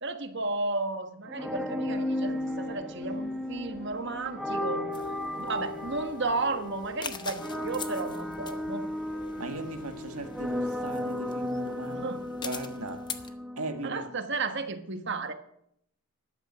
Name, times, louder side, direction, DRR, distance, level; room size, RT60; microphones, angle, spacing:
voice 1, 0.0-4.8 5.4-8.8 9.4-9.5 11.9-12.2 13.8-15.3, right 3 dB, 50° right, 1.3 m, -33 dB
sound 1, 1.3-14.2, left 1 dB, ahead, 1.1 m, -35 dB
sound 2, 1.9-10.8, equal, 35° left, 6.5 m, -51 dB
sound 3, 4.9-13.3, left 6 dB, 20° left, 0.8 m, -44 dB
voice 2, 9.4-14.0, right 2 dB, 80° right, 1.8 m, -38 dB
13.0 x 11.5 x 6.1 m
head